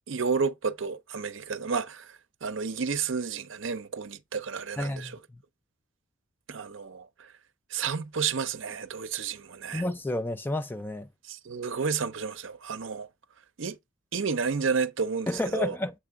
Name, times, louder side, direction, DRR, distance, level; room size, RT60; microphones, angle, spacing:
voice 1, 0.1-2.1 2.4-5.2 6.5-7.1 7.7-9.8 11.3-13.1 13.6-13.8 14.1-15.8, right 5 dB, 70° right, 0.6 m, -31 dB
voice 2, 4.8-5.1 9.7-11.1 15.3-15.9, left 1 dB, 10° left, 0.3 m, -30 dB
7.5 x 3.6 x 3.5 m
head